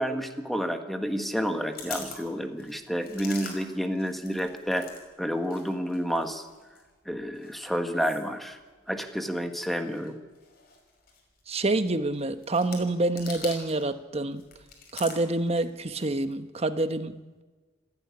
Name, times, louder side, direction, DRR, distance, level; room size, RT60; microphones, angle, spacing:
voice 1, 0.0-4.9 5.2-6.4 7.1-8.6 8.9-10.2, equal, ahead, 6 dB, 1.4 m, -30 dB
sound 1, 1.4-5.0 5.3-13.9 14.2-16.3, left 5 dB, 55° left, 5.6 m, -45 dB
voice 2, 11.5-14.4 14.9-17.4, right 2 dB, 35° right, 10 dB, 1.1 m, -27 dB
28.0 x 10.5 x 9.7 m, 1.3 s
head